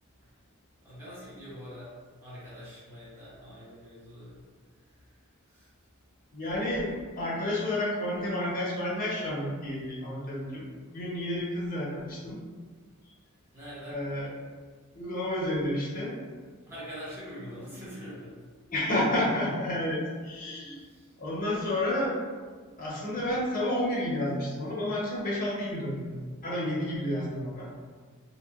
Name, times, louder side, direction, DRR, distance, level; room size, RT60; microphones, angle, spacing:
voice 1, 0.8-1.9 2.2-4.4 5.5-5.7 13.5-14.0 16.7-18.4 20.8-21.1, equal, 10° right, -11 dB, 0.7 m, -44 dB
voice 2, 6.3-10.6 10.9-12.4 13.9-14.3 15.0-16.2 18.7-20.8 21.2-22.2 22.8-26.1 26.4-27.7, left 1 dB, 40° left, -7 dB, 0.7 m, -30 dB
2.8 x 2.2 x 2.3 m, 1.5 s
head